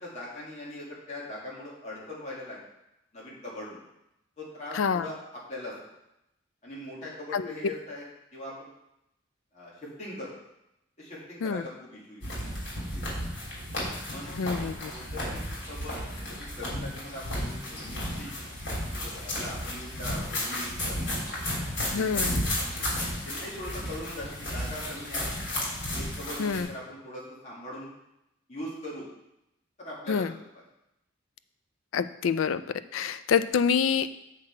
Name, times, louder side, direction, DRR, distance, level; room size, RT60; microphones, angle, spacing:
voice 1, 0.0-2.6 3.1-3.8 4.4-5.8 6.6-8.0 8.3-8.7 9.5-10.3 11.0-12.4 14.1-15.4 15.7-18.3 18.9-21.1 21.8-25.4 25.9-27.9 28.5-29.1 29.8-30.3, left 1 dB, 35° left, -6 dB, 2.0 m, -41 dB
voice 2, 4.7-5.1 7.3-7.5 11.4-11.6 14.4-14.9 21.9-22.4 26.4-26.7 30.1-30.3 31.9-32.6 32.9-34.1, left 6 dB, 85° left, 13 dB, 0.4 m, -26 dB
sound 1, 12.2-26.6, left 1 dB, 60° left, 3.1 m, -33 dB
7.5 x 5.8 x 4.5 m, 0.86 s
head